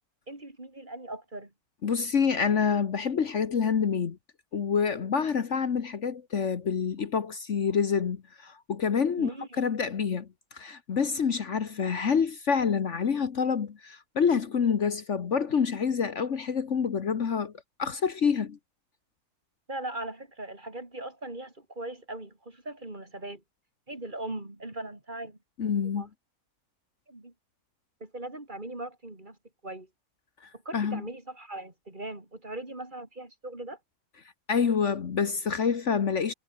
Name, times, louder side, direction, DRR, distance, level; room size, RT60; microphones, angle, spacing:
voice 1, 0.3-1.5 9.2-9.6 19.7-23.4 23.9-25.4 26.0-26.1 27.1-27.3 28.0-29.4 29.6-29.9 30.5-33.8, right 2 dB, 30° right, 3.8 m, -39 dB
voice 2, 1.8-4.2 4.5-17.5 17.8-18.6 25.6-26.1 30.4-31.0 34.5-36.3, left 6 dB, 55° left, 1.5 m, -27 dB
omnidirectional pair, 1.5 m